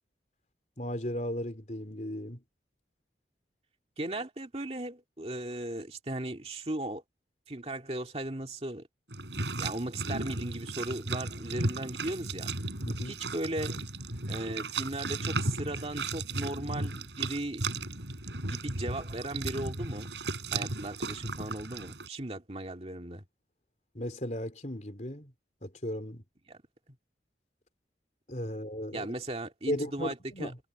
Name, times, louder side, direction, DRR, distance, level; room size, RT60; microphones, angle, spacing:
voice 1, 0.8-2.4 12.8-13.2 23.9-25.3 25.6-26.2 28.3-29.1 29.7-30.6, equal, 40° left, 4.0 m, -36 dB
voice 2, 4.0-7.0 7.5-8.9 9.6-12.5 13.1-13.8 14.3-17.6 18.4-20.1 20.5-23.2 26.5-26.6 28.9-30.5, right 1 dB, 35° right, 2.3 m, -37 dB
sound 1, 9.1-22.1, right 2 dB, 80° right, 6.2 m, -35 dB
head